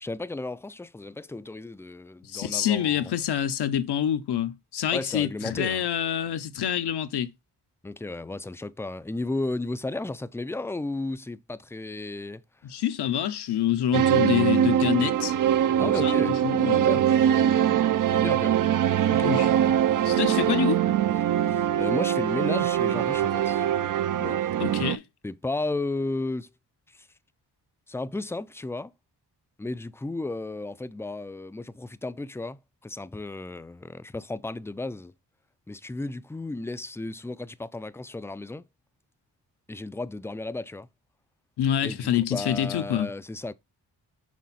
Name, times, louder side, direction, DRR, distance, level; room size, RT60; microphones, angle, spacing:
voice 1, 0.0-3.1 4.9-5.8 7.8-12.4 15.8-16.4 16.7-17.9 18.1-18.6 19.1-19.5 21.5-23.7 24.2-24.4 25.2-26.5 26.9-27.1 27.9-28.9 29.6-35.1 35.7-38.7 39.7-40.9 41.8-43.5, left 2 dB, 5° left, 0.4 m, -34 dB
voice 2, 2.3-7.3 12.6-15.3 16.0-16.9 19.2-19.5 20.0-20.8 24.6-25.0 41.6-43.1, left 10 dB, 75° left, 0.8 m, -26 dB
sound 1, 13.9-25.0, right 10 dB, 50° right, 0.5 m, -23 dB
6.4 x 3.7 x 4.1 m
cardioid pair, 55°, 41 cm